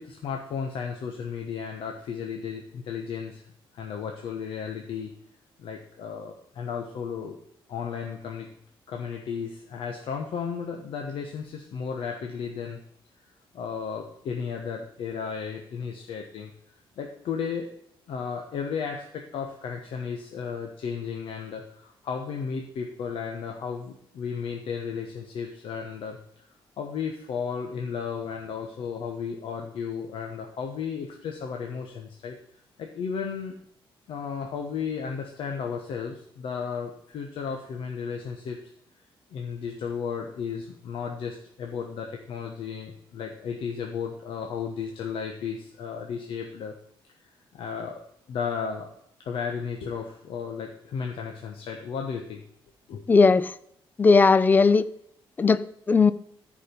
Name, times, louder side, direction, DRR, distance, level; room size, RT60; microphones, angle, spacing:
voice 1, 0.0-3.4 3.7-5.1 5.6-7.4 7.7-8.5 8.9-12.8 13.5-16.5 17.0-17.7 18.1-26.2 26.8-32.3 32.8-33.6 34.1-38.6 39.3-46.7 47.5-48.0 48.3-48.9 49.2-52.4 52.9-53.0, left 6 dB, 75° left, 2 dB, 1.3 m, -34 dB
voice 2, 53.1-53.5 54.0-54.9 55.4-56.1, left 4 dB, 20° left, 16 dB, 0.4 m, -18 dB
14.5 x 5.1 x 5.3 m, 0.71 s
wide cardioid pair, 170°, 9 cm